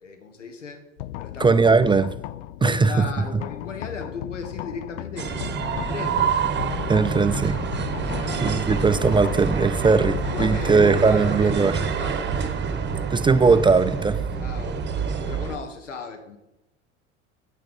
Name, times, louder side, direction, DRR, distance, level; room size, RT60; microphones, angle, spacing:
voice 1, 0.0-0.8 1.2-1.6 2.6-6.3 8.0-8.4 10.1-12.2 14.4-14.8 15.3-16.4, left 5 dB, 85° left, 1.4 m, -36 dB
sound 1, 1.0-14.8, left 14 dB, 65° left, 0.5 m, -36 dB
voice 2, 1.4-2.1 2.6-3.4 6.9-7.6 8.4-11.8 13.1-14.2, right 4 dB, 15° right, 0.4 m, -19 dB
sound 2, 5.2-15.6, right 6 dB, 30° right, 1.3 m, -27 dB
8.8 x 8.6 x 5.4 m
figure-of-eight pair, 65°, 36 cm